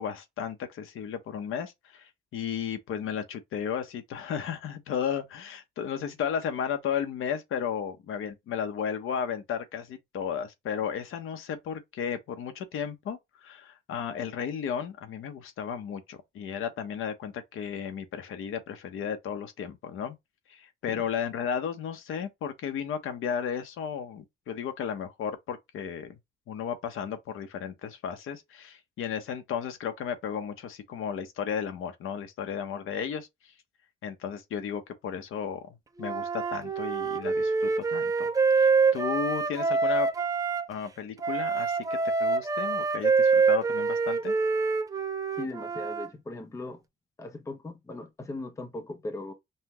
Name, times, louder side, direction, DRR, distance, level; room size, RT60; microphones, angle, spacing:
voice 1, 0.0-20.2 20.5-26.2 26.5-33.3 34.0-38.3 38.5-40.1 40.7-41.8 42.2-44.4, left 7 dB, 85° left, 0.9 m, -34 dB
Wind instrument woodwind instrument, 36.0-40.6 41.2-46.1, right 4 dB, 15° right, 0.4 m, -26 dB
voice 2, 45.4-46.8 47.2-49.3, left 2 dB, 15° left, 0.7 m, -38 dB
5.5 x 2.2 x 2.9 m
wide cardioid pair, 170°, 21 cm